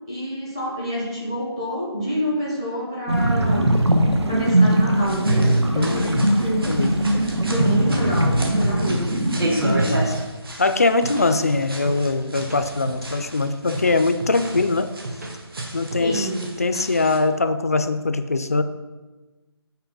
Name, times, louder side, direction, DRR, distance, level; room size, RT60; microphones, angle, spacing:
voice 1, 0.1-3.8 4.3-6.6 7.4-9.2 16.0-16.5, equal, 10° right, -5 dB, 0.6 m, -27 dB
sound 1, 3.1-10.1, right 1 dB, 80° right, 1.0 m, -20 dB
sound 2, 5.0-17.2, right 1 dB, 60° right, 1.4 m, -34 dB
voice 2, 5.7-6.3 6.7-7.0 9.6-10.1 10.6-14.9 15.7-16.3 16.6-18.6, left 3 dB, 35° left, 10 dB, 0.3 m, -22 dB
sound 3, 9.6-10.5 10.8-12.0 12.2-13.2 13.5-15.3 15.6-16.5, right 2 dB, 40° right, 1.0 m, -33 dB
5.8 x 4.3 x 5.3 m, 1.2 s
figure-of-eight pair, 170°, 14 cm